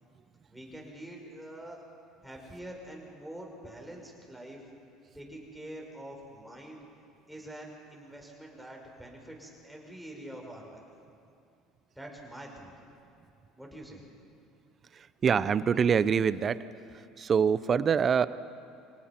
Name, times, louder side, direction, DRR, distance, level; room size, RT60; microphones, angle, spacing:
voice 1, 0.5-1.8 2.2-4.6 5.1-6.8 7.3-10.8 12.0-12.9 13.6-14.0, right 1 dB, ahead, -1 dB, 5.3 m, -45 dB
voice 2, 14.9-16.6 16.9-18.3, right 7 dB, 35° right, 16 dB, 0.7 m, -25 dB
25.0 x 18.5 x 6.0 m, 2.6 s
supercardioid pair, 95°, 0 cm